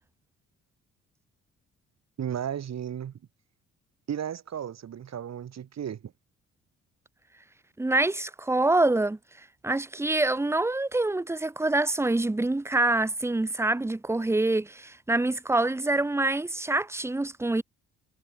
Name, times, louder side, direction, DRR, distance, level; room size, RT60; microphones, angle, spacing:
voice 1, 2.2-3.1 4.1-6.0, right 9 dB, 60° right, 7.3 m, -34 dB
voice 2, 7.8-9.2 9.6-17.6, right 2 dB, 10° right, 0.8 m, -26 dB
cardioid pair, 90°, 30 cm